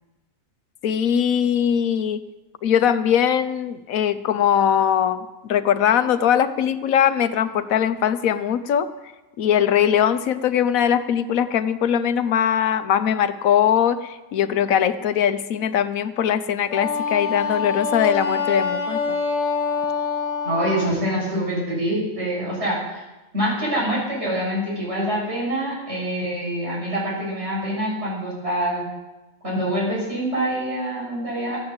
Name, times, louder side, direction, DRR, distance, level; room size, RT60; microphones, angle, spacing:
voice 1, 0.8-2.2 2.6-8.9 9.4-19.2, left 9 dB, 80° left, 12 dB, 1.2 m, -21 dB
Wind instrument woodwind instrument, 16.7-20.9, left 5 dB, 55° left, 2.0 m, -25 dB
voice 2, 20.4-23.0 23.3-28.9 29.4-31.6, right 1 dB, 50° right, -5 dB, 7.0 m, -25 dB
14.0 x 9.4 x 7.8 m, 1.1 s
omnidirectional pair, 1.4 m